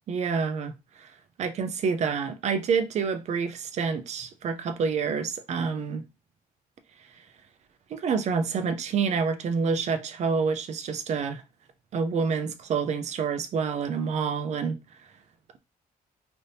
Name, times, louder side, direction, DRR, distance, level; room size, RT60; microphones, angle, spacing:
voice 1, 0.1-0.7 1.0-1.1 1.4-6.0 7.9-11.4 11.9-14.8, right 5 dB, 45° right, 0.5 m, -27 dB
3.3 x 2.7 x 2.7 m
cardioid pair, 140°, 16 cm